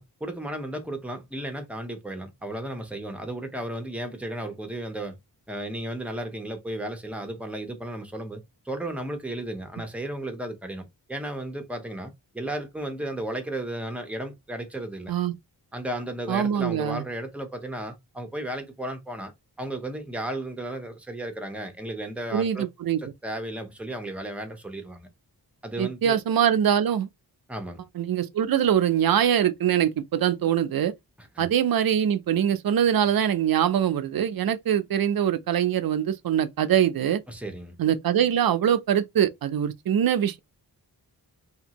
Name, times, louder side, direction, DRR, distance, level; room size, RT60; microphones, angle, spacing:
voice 1, 0.0-5.2 5.5-15.1 15.7-19.3 19.6-22.7 23.0-25.1 25.6-26.2 27.5-27.8 31.2-31.5 37.3-37.8, right 1 dB, 5° right, 0.6 m, -34 dB
voice 2, 16.3-17.0 22.3-23.0 25.8-27.1 28.0-30.9 31.4-37.2 37.8-40.4, right 9 dB, 60° right, 0.5 m, -23 dB
2.8 x 2.6 x 2.8 m
wide cardioid pair, 125°, 41 cm